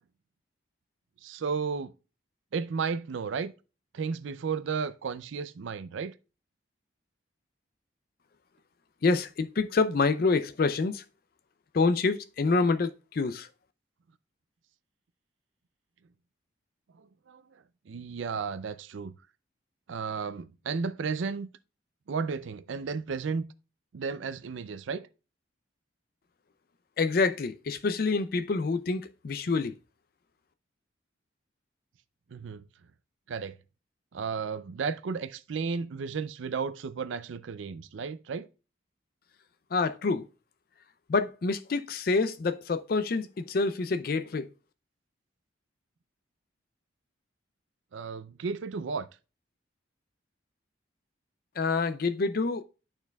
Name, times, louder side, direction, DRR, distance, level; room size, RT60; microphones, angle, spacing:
voice 1, 1.2-1.9 2.5-3.5 3.9-6.1 17.0-19.1 19.9-21.5 22.1-23.5 23.9-25.1 32.3-32.6 33.3-33.6 34.1-38.5 47.9-49.1, right 5 dB, 75° right, 0.4 m, -33 dB
voice 2, 9.0-11.0 11.7-13.5 27.0-29.7 39.7-40.2 41.1-44.5 51.6-52.6, left 4 dB, 50° left, 0.4 m, -27 dB
12.0 x 4.5 x 2.3 m
head